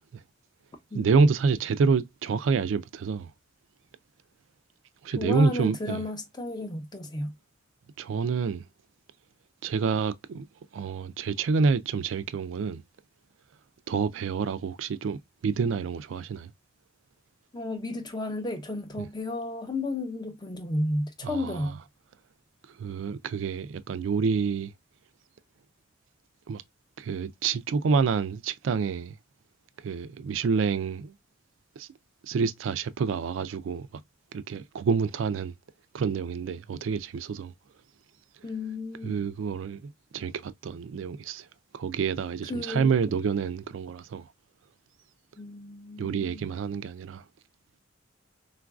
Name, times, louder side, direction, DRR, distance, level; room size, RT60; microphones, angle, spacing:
voice 1, 0.9-3.3 5.0-6.0 8.0-8.6 9.6-10.5 10.7-12.8 13.9-16.5 19.0-19.1 21.2-21.7 22.8-24.7 26.5-26.6 27.0-29.2 29.8-31.1 31.8-31.9 32.3-33.9 34.3-35.5 35.9-37.5 39.0-41.5 41.7-44.3 46.0-47.2, right 5 dB, 80° right, 0.4 m, -28 dB
voice 2, 5.2-7.3 17.5-21.8 38.4-39.1 42.5-42.9 45.4-46.4, left 2 dB, 20° left, 0.6 m, -33 dB
3.8 x 2.4 x 2.2 m
head